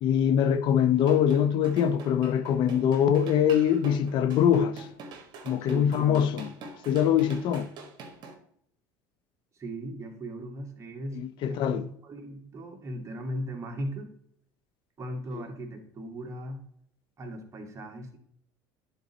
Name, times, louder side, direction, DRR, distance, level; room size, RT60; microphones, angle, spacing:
voice 1, 0.0-4.9 5.4-6.5 6.9-7.7 11.2-11.8 15.3-15.4, left 9 dB, 60° left, 0.5 m, -23 dB
sound 1, 1.0-8.3, right 4 dB, 55° right, 1.6 m, -45 dB
voice 2, 5.6-6.4 9.6-11.2 11.5-14.2 15.0-16.6 17.2-18.2, right 1 dB, 30° right, 1.8 m, -38 dB
10.0 x 4.0 x 4.1 m
supercardioid pair, 90°, 9 cm